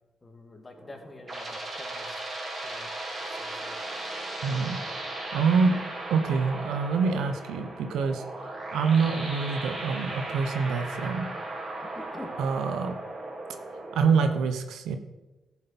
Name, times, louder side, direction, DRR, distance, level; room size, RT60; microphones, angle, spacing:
voice 1, 0.2-2.1 2.6-2.9 3.3-3.8 11.8-12.4, left 2 dB, 30° left, 3 dB, 2.2 m, -46 dB
sound 1, 0.8-14.4, right 2 dB, 45° right, 3.4 m, -37 dB
voice 2, 4.4-4.8 5.3-5.8 6.1-8.2 8.7-11.3 12.4-13.0 13.9-15.0, right 5 dB, 85° right, 8 dB, 0.9 m, -25 dB
13.5 x 7.3 x 4.3 m, 1.1 s
cardioid pair, 70°, 0 cm